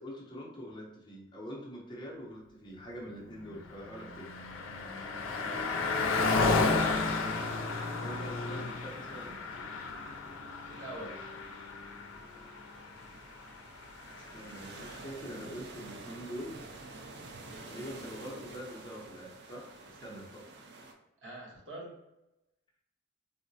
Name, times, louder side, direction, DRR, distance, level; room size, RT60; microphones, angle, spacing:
voice 1, 0.0-4.3 8.0-9.4 14.2-16.6 17.5-19.7 20.0-20.5, equal, 25° left, -3 dB, 0.6 m, -44 dB
Car passing by, 3.4-15.1, left 3 dB, 90° left, 0.4 m, -33 dB
voice 2, 5.2-6.1 10.7-11.2 17.4-17.9 21.2-21.9, right 1 dB, 75° right, -4 dB, 1.1 m, -46 dB
sound 1, 5.9-20.9, right 3 dB, 55° right, 0.4 m, -51 dB
3.6 x 2.1 x 2.7 m, 0.90 s
head